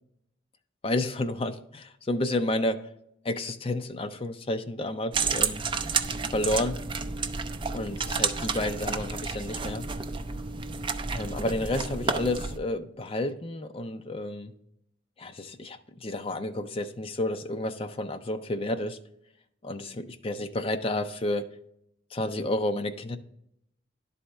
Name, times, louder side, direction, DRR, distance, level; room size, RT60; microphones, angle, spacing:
voice 1, 0.8-2.8 3.2-5.6 6.3-6.8 7.7-9.9 11.1-14.5 15.2-19.0 19.6-21.5 22.1-23.2, left 1 dB, 30° left, 0.5 m, -30 dB
sound 1, 5.1-12.6, right 5 dB, 25° right, 0.4 m, -31 dB
11.0 x 4.2 x 3.3 m
head